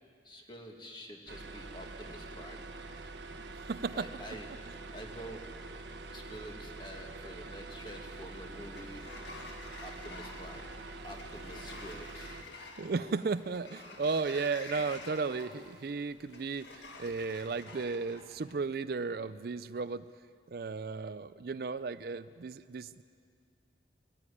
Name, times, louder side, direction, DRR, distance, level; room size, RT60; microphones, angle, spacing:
voice 1, 0.2-2.7 3.9-4.5 4.9-5.6 6.1-9.0 9.8-10.7 11.0-12.4, equal, 25° left, 2 dB, 2.2 m, -47 dB
sound 1, 1.3-12.4, right 3 dB, 80° right, 1.2 m, -45 dB
voice 2, 3.5-4.1 12.8-20.1 20.5-23.0, right 4 dB, 55° right, 14 dB, 0.4 m, -35 dB
Sliding door, 8.0-18.5, left 3 dB, 80° left, 1.8 m, -50 dB
21.0 x 14.0 x 9.9 m, 2.3 s
head